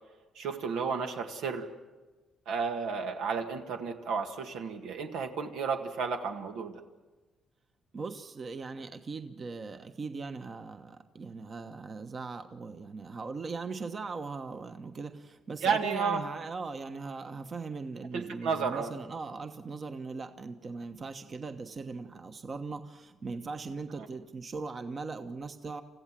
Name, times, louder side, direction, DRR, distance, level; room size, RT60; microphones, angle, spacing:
voice 1, 0.4-1.7 2.5-6.8 15.6-16.2 18.1-18.9, right 5 dB, 90° right, 4 dB, 1.9 m, -32 dB
voice 2, 7.9-25.8, right 4 dB, 40° right, 7 dB, 1.2 m, -39 dB
28.5 x 15.0 x 7.6 m, 1.3 s
cardioid pair, 90°, 0 cm